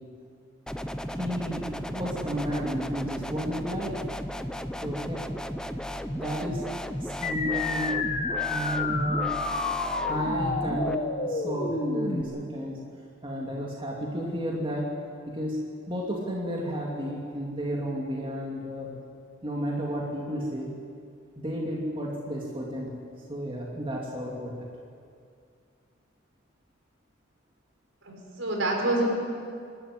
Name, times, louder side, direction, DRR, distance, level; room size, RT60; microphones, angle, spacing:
sound 1, 0.7-10.9, equal, 5° left, 0.7 m, -35 dB
voice 1, 1.1-4.0 4.8-5.2 6.1-6.6 7.0-8.0 8.4-9.3 10.0-12.8 13.2-14.9 15.3-15.6 15.8-19.0 19.4-20.7 21.4-22.9 23.3-24.7, equal, 25° right, -3 dB, 2.6 m, -32 dB
sound 2, 7.2-12.2, left 4 dB, 40° left, 1.5 m, -30 dB
voice 2, 28.0-29.0, right 2 dB, 70° right, 0 dB, 5.3 m, -27 dB
25.5 x 13.0 x 9.7 m, 2.3 s
head